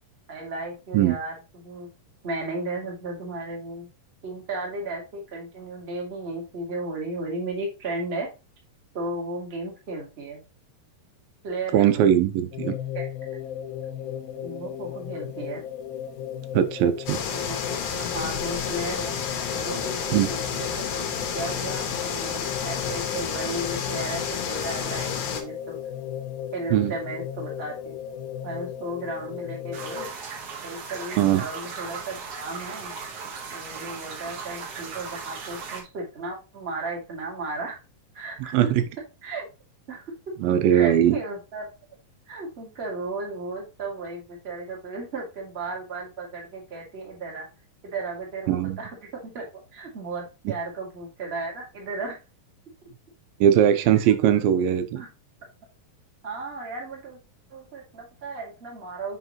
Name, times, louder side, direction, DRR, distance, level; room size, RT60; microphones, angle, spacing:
voice 1, 0.3-1.9 2.2-3.9 4.2-8.3 8.9-10.4 11.4-12.1 12.9-13.1 14.4-15.6 17.3-19.2 19.5-21.0 21.3-25.8 26.5-27.9 28.4-30.1 30.6-32.9 33.5-37.8 38.1-38.6 39.2-39.4 39.9-40.1 40.7-41.7 42.3-47.5 47.8-48.9 49.2-49.4 49.7-52.2 53.9-54.4 54.9-55.1 56.2-57.2 57.5-59.2, right 2 dB, 25° right, -1 dB, 1.5 m, -34 dB
voice 2, 11.7-12.8 16.5-17.2 20.1-20.3 26.7-26.9 31.2-31.4 38.5-38.8 40.4-41.2 48.5-48.8 53.4-55.0, right 10 dB, 85° right, 9 dB, 2.5 m, -20 dB
sound 1, 12.5-30.1, left 10 dB, 85° left, 2.6 m, -35 dB
sound 2, 17.1-25.4, left 7 dB, 70° left, 2.0 m, -31 dB
sound 3, 29.7-35.8, right 5 dB, 55° right, 1.8 m, -37 dB
5.9 x 5.6 x 3.0 m, 0.28 s
omnidirectional pair, 4.0 m